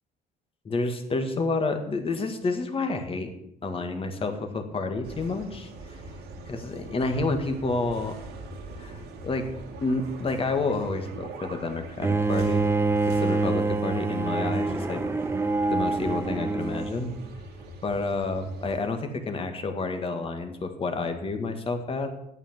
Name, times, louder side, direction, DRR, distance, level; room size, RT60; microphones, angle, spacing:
voice 1, 0.7-3.3 3.6-6.0 6.5-8.2 8.8-9.5 9.8-12.7 13.0-15.0 15.7-17.1 17.8-22.1, left 3 dB, 35° left, 6 dB, 1.9 m, -29 dB
sound 1, 5.0-18.8, right 2 dB, 80° right, 2.3 m, -42 dB
Bowed string instrument, 12.0-17.1, right 3 dB, 15° right, 0.7 m, -26 dB
8.9 x 8.8 x 7.6 m, 0.77 s
cardioid pair, 110°, 17 cm